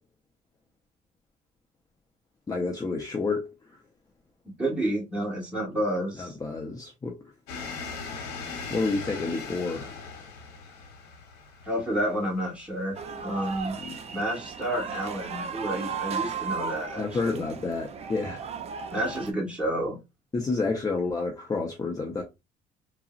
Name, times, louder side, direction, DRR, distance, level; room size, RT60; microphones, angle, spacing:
voice 1, 2.5-3.5 6.2-7.2 8.7-9.9 13.8-14.0 17.0-18.4 20.3-22.2, left 3 dB, 20° left, 0.6 m, -29 dB
voice 2, 4.6-6.4 11.6-13.8 14.1-17.4 18.9-20.0, right 1 dB, 5° right, 1.5 m, -30 dB
sound 1, 7.5-13.9, left 4 dB, 90° left, 0.9 m, -40 dB
sound 2, 13.0-19.3, right 6 dB, 40° right, 0.5 m, -35 dB
3.6 x 2.0 x 2.4 m
cardioid pair, 110°, 17 cm